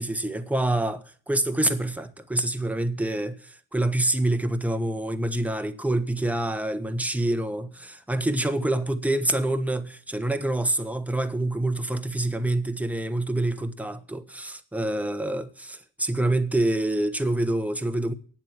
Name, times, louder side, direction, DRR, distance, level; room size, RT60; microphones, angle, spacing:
voice 1, 0.0-18.1, right 1 dB, 5° right, 1.2 m, -26 dB
9.2 x 7.6 x 7.5 m
cardioid pair, 90°, 30 cm